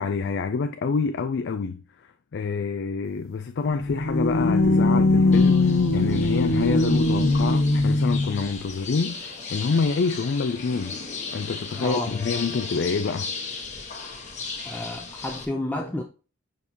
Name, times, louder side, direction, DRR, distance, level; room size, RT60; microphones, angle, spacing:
voice 1, 0.0-11.0 11.3-13.3, left 4 dB, 60° left, 0.4 m, -27 dB
sound 1, 3.7-8.5, left 2 dB, 85° left, 0.9 m, -21 dB
sound 2, 5.3-15.4, left 4 dB, 35° left, 1.1 m, -36 dB
voice 2, 11.8-12.2 14.6-16.0, left 1 dB, 10° left, 0.5 m, -30 dB
6.3 x 5.2 x 2.8 m
head